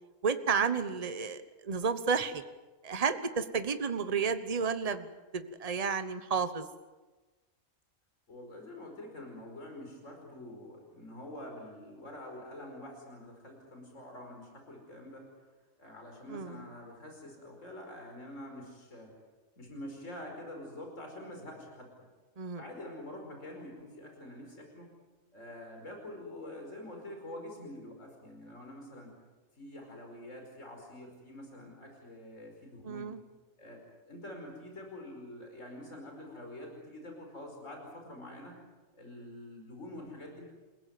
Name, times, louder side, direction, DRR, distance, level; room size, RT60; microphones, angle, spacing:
voice 1, 0.2-2.4 2.8-5.1 5.3-6.7 16.3-16.6 22.4-22.6 32.8-33.2, right 5 dB, 30° right, 10 dB, 1.2 m, -31 dB
voice 2, 8.3-15.2 15.8-19.1 19.6-21.9 22.6-24.9 25.3-29.1 29.6-33.1 33.6-38.6 38.9-40.4, left 1 dB, 70° left, 2 dB, 5.5 m, -46 dB
28.5 x 16.5 x 9.3 m, 1.2 s
omnidirectional pair, 1.4 m